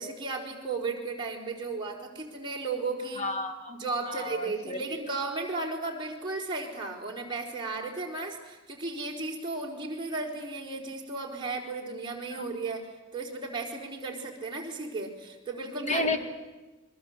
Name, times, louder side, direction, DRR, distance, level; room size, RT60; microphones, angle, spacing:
voice 1, 0.0-3.3 3.7-12.9 13.1-16.2, right 3 dB, 25° right, -1 dB, 4.5 m, -35 dB
voice 2, 3.2-3.8 4.0-4.8 12.3-12.4 15.8-16.2, left 2 dB, 35° left, 7 dB, 2.2 m, -31 dB
27.5 x 22.5 x 8.1 m, 1.1 s
head